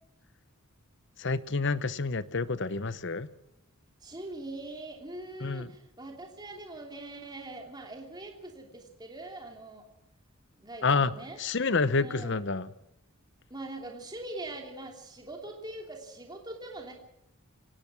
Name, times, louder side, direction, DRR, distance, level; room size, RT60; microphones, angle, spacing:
voice 1, 1.2-3.3 5.4-5.7 10.8-11.1 11.4-12.7, left 4 dB, 55° left, 15 dB, 0.9 m, -28 dB
voice 2, 4.0-9.8 10.6-11.4 12.0-12.4 13.5-16.9, right 2 dB, 20° right, 1 dB, 3.0 m, -42 dB
25.0 x 18.0 x 6.1 m, 0.80 s
head